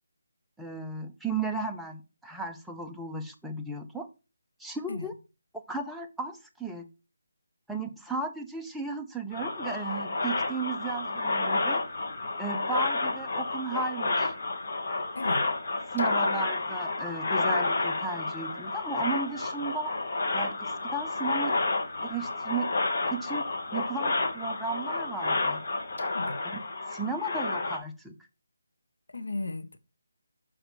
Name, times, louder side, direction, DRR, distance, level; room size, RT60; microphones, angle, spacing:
voice 1, 0.6-4.1 4.6-5.1 5.5-6.9 7.7-11.8 12.4-14.3 15.9-19.9 20.3-21.6 22.0-22.7 23.1-23.5 23.7-25.6 26.5-26.6 26.9-28.2, right 3 dB, ahead, 0.4 m, -35 dB
sound 1, 9.3-27.8, left 3 dB, 50° left, 1.4 m, -30 dB
voice 2, 29.1-29.8, left 2 dB, 90° left, 0.9 m, -35 dB
6.4 x 4.5 x 4.6 m
hypercardioid pair, 170°, 0 cm